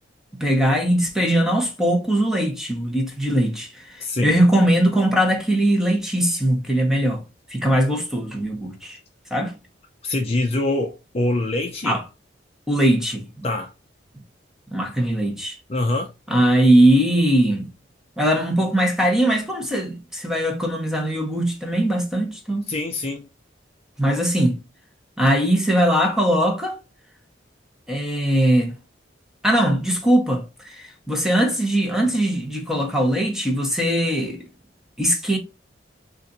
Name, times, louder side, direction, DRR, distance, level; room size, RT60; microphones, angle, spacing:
voice 1, 0.4-4.0 4.2-7.2 7.5-9.0 9.3-9.5 11.8-12.0 12.7-13.4 14.7-15.6 16.3-17.7 18.2-22.7 24.0-24.6 25.2-26.8 27.9-28.8 29.4-34.4 35.0-35.4, right 1 dB, ahead, 0.9 m, -20 dB
voice 2, 4.0-4.4 10.0-12.0 13.4-13.7 15.7-16.1 22.7-23.3, left 2 dB, 35° left, 0.5 m, -24 dB
3.9 x 2.5 x 3.9 m
head